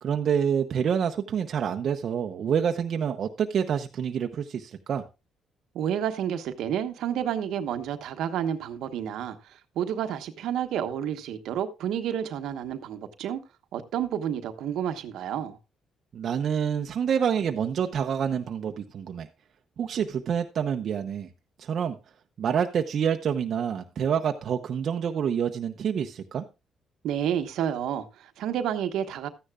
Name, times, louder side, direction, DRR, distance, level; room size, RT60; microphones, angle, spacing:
voice 1, 0.0-5.0 16.1-19.3 19.8-21.3 21.6-22.0 22.4-26.4, right 8 dB, 60° right, 0.8 m, -27 dB
voice 2, 5.7-13.4 13.7-15.6 27.0-29.3, right 9 dB, 85° right, 1.1 m, -30 dB
13.5 x 10.0 x 2.4 m
cardioid pair, 90°, 0 cm